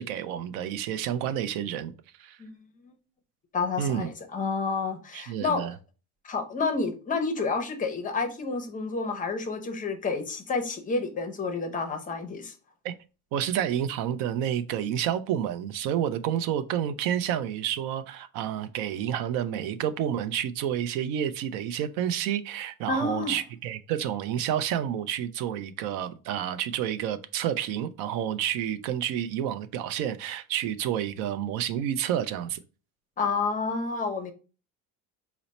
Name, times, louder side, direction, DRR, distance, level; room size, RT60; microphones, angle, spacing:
voice 1, 0.0-1.9 2.2-2.4 3.8-4.1 5.1-5.7 12.8-12.9 13.3-32.6, right 10 dB, 75° right, 0.5 m, -29 dB
voice 2, 3.5-5.7 6.2-12.5 22.9-23.4 33.2-34.3, left 4 dB, 25° left, 0.5 m, -29 dB
4.1 x 2.0 x 4.0 m
cardioid pair, 140°, 34 cm